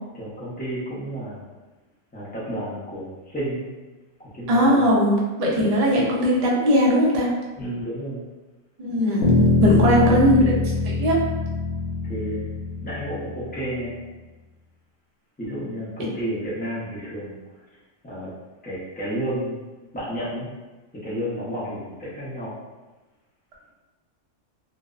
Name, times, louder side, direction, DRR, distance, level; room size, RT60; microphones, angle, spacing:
voice 1, 0.1-1.4 2.1-3.7 4.2-4.9 7.6-8.2 9.7-10.3 12.0-12.5 12.8-14.0 15.4-17.4 18.0-18.3 18.6-19.5 19.9-20.5 21.0-22.5, equal, 10° left, -9 dB, 0.4 m, -31 dB
voice 2, 4.5-7.3 8.8-10.4 11.0-11.2 16.0-16.1, equal, 75° right, -3 dB, 0.3 m, -19 dB
Bass guitar, 9.2-13.6, left 3 dB, 70° left, 0.8 m, -23 dB
2.5 x 2.0 x 2.4 m, 1.2 s
omnidirectional pair, 1.3 m